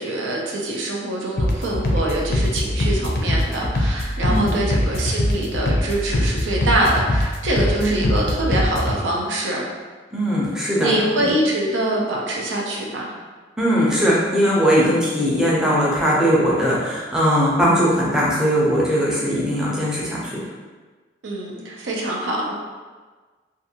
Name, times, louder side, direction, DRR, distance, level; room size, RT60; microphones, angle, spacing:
voice 1, 0.0-9.6 10.8-13.1 21.2-22.5, right 1 dB, 90° right, -2 dB, 0.5 m, -24 dB
sound 1, 1.4-9.0, left 1 dB, 55° left, 0.4 m, -22 dB
voice 2, 10.1-11.3 13.6-20.4, equal, 5° right, -7 dB, 0.5 m, -20 dB
2.5 x 2.4 x 2.7 m, 1.4 s
head